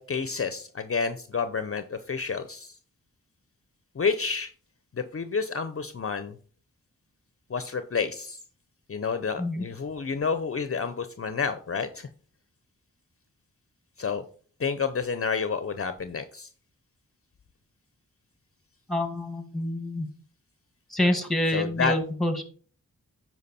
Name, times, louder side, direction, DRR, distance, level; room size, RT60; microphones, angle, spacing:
voice 1, 0.0-2.8 3.9-4.5 4.9-6.4 7.5-8.4 8.9-12.1 14.0-14.2 14.6-16.5 21.0-21.1 21.5-22.0, left 5 dB, 45° left, 11 dB, 0.7 m, -29 dB
voice 2, 18.9-20.1 20.9-22.4, left 1 dB, ahead, 7 dB, 1.8 m, -27 dB
9.7 x 4.7 x 4.2 m, 0.43 s
cardioid pair, 55°, 33 cm